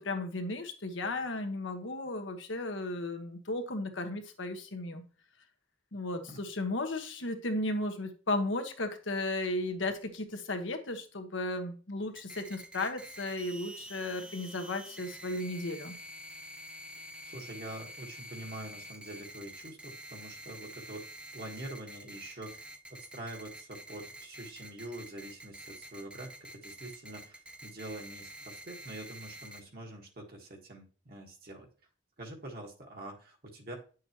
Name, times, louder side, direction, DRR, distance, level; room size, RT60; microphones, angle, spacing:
voice 1, 0.0-5.0 5.9-16.0, left 2 dB, 75° left, 5 dB, 1.3 m, -35 dB
sound 1, 12.2-29.6, equal, 5° right, 0.5 m, -48 dB
voice 2, 17.2-21.1 21.3-22.6 22.9-31.7 32.2-33.8, right 1 dB, 50° right, 1 dB, 1.5 m, -45 dB
9.8 x 6.4 x 3.0 m, 0.39 s
head